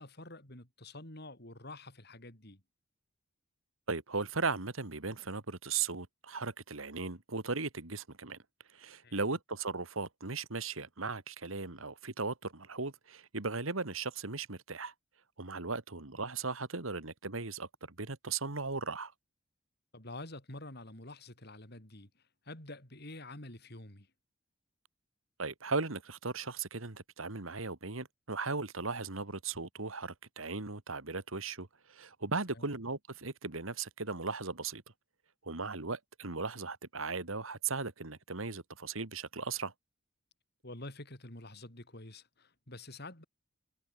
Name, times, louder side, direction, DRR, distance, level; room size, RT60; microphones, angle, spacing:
voice 1, 0.0-2.6 9.0-9.2 19.9-22.1 22.4-24.1 32.5-32.6 40.6-43.2, left 2 dB, 55° left, 5.8 m, -48 dB
voice 2, 3.9-8.4 8.7-14.9 15.4-19.1 25.4-34.8 35.4-39.7, right 4 dB, 85° right, 2.3 m, -37 dB
head